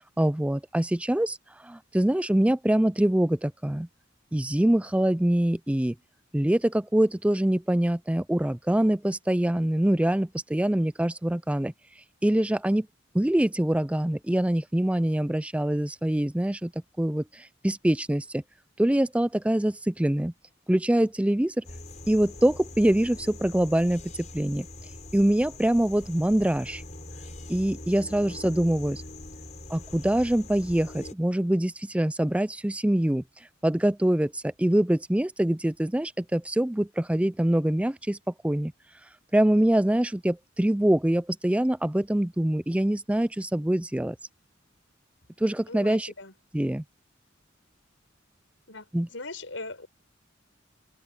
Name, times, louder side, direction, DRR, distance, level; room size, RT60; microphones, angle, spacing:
voice 1, 0.2-1.4 1.6-3.9 4.3-5.9 6.3-11.7 12.2-12.9 13.1-16.7 17.0-18.4 18.8-20.3 20.7-21.6 22.1-24.0 24.3-24.7 25.1-26.8 27.5-29.0 29.7-33.2 33.6-38.2 38.4-38.7 39.3-44.2 45.4-46.1 46.5-46.8 48.9-49.1, right 1 dB, 5° right, 0.4 m, -24 dB
sound 1, 21.6-31.1, left 2 dB, 40° left, 5.2 m, -43 dB
voice 2, 45.7-46.3 48.7-48.9 49.1-49.9, left 2 dB, 80° left, 5.4 m, -39 dB
head